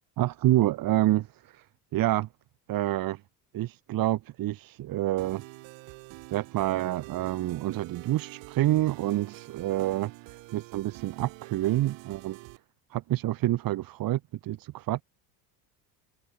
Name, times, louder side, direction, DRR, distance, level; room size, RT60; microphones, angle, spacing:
voice 1, 0.2-1.3 1.5-1.6 1.9-2.3 2.7-3.2 3.5-5.4 6.3-12.4 12.9-15.0, right 15 dB, 45° right, 1.3 m, -27 dB
sound 1, 5.2-12.6, right 26 dB, 70° right, 5.5 m, -46 dB
supercardioid pair, 95°, 46 cm